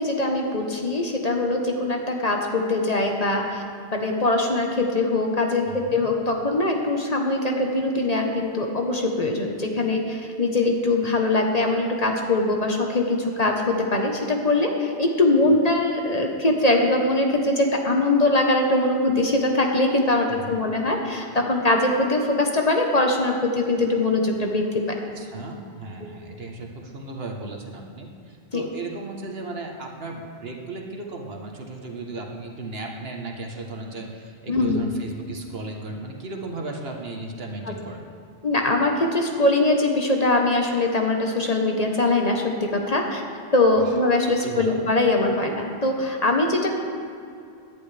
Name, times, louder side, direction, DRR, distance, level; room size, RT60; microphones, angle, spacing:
voice 1, 0.0-3.6 3.9-25.0 26.0-26.1 28.5-28.6 34.5-34.8 38.4-43.2 43.5-46.7, left 2 dB, 40° left, 2 dB, 1.2 m, -22 dB
voice 2, 5.7-6.1 15.4-15.6 20.3-20.6 25.2-38.0 43.8-43.9 44.4-44.8, right 2 dB, 65° right, 2 dB, 1.5 m, -35 dB
17.5 x 11.0 x 3.4 m, 2.4 s
omnidirectional pair, 1.1 m